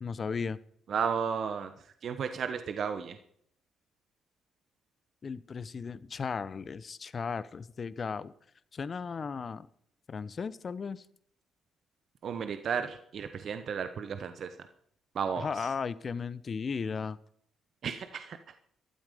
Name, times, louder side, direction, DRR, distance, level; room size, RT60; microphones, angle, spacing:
voice 1, 0.0-0.6 5.2-8.3 8.7-9.7 10.1-11.0 15.3-17.2, left 5 dB, 45° left, 16 dB, 0.9 m, -35 dB
voice 2, 0.9-1.7 2.0-3.2 12.2-14.5 15.1-15.5 17.8-18.4, right 6 dB, 60° right, 9 dB, 1.0 m, -33 dB
13.5 x 12.5 x 5.2 m, 0.65 s
hypercardioid pair, 50°, 0 cm